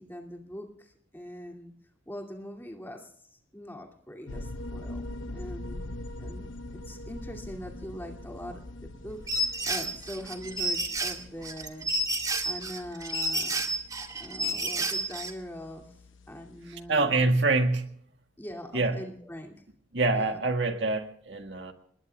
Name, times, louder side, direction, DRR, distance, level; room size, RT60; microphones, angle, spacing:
voice 1, 0.0-1.7 2.1-5.1 5.3-5.8 6.2-12.1 12.5-13.6 14.1-16.0 16.3-17.3 18.4-19.6 20.1-20.5, equal, 10° left, 3 dB, 2.5 m, -42 dB
sound 1, 4.3-16.8, left 1 dB, 70° left, 1.0 m, -43 dB
sound 2, 9.3-15.3, right 1 dB, 20° right, 1.9 m, -30 dB
voice 2, 16.7-17.9 18.7-19.0 19.9-21.7, right 3 dB, 60° right, 5 dB, 1.8 m, -26 dB
29.0 x 21.0 x 2.4 m, 0.62 s
head